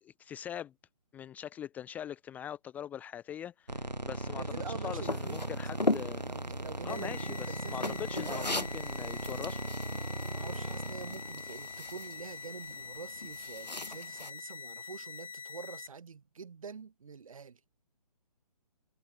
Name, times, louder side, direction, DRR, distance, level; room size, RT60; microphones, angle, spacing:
voice 1, 0.0-0.7 1.1-6.2 6.8-9.6, left 10 dB, 5° left, 0.7 m, -42 dB
sound 1, 3.7-12.9, right 1 dB, 90° right, 3.3 m, -39 dB
voice 2, 4.4-5.9 6.2-8.5 10.3-17.6, right 6 dB, 55° right, 3.3 m, -46 dB
sound 2, 5.0-14.3, left 2 dB, 85° left, 1.8 m, -39 dB
sound 3, 6.9-15.9, left 6 dB, 55° left, 1.6 m, -45 dB
figure-of-eight pair, 140°, 21 cm